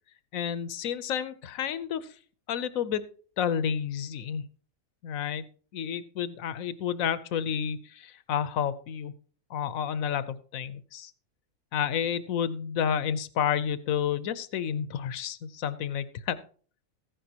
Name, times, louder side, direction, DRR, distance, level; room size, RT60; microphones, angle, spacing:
voice 1, 0.3-2.1 2.5-3.0 3.4-4.4 5.0-5.4 5.7-9.1 9.5-11.1 11.7-16.4, left 8 dB, 90° left, 14 dB, 1.2 m, -30 dB
15.0 x 10.0 x 2.9 m, 0.43 s
omnidirectional pair, 1.4 m